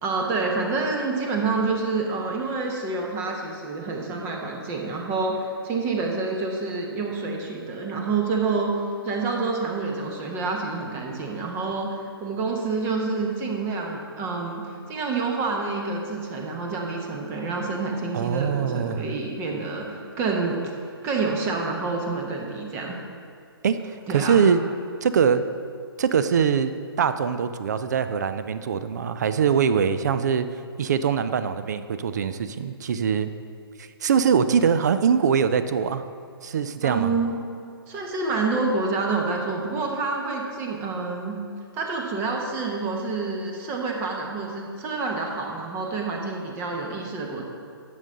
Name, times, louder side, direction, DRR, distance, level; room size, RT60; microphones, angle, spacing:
voice 1, 0.0-8.8 9.0-23.0 24.1-24.4 36.8-37.4 37.9-41.4 41.7-47.4, right 3 dB, 20° right, 1 dB, 0.9 m, -28 dB
voice 2, 18.1-19.1 23.6-24.6 25.0-25.4 26.0-30.5 30.8-33.3 33.8-36.0 36.4-37.1, right 7 dB, 45° right, 11 dB, 0.4 m, -23 dB
10.5 x 6.9 x 3.9 m, 2.4 s
figure-of-eight pair, 130°, 13 cm